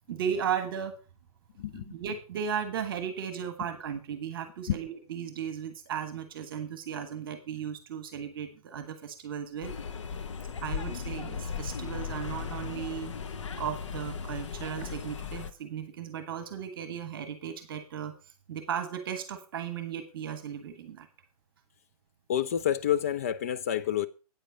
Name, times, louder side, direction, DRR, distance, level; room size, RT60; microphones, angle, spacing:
voice 1, 0.1-0.9 1.7-9.7 10.6-13.1 13.6-18.1 18.5-21.1, right 8 dB, 35° right, 1.4 m, -36 dB
voice 2, 1.6-1.9 4.7-4.8 22.3-24.1, left 10 dB, 25° left, 0.4 m, -28 dB
sound 1, 9.6-15.5, left 6 dB, 50° left, 1.0 m, -37 dB
9.0 x 8.0 x 5.2 m
figure-of-eight pair, 130°, 20 cm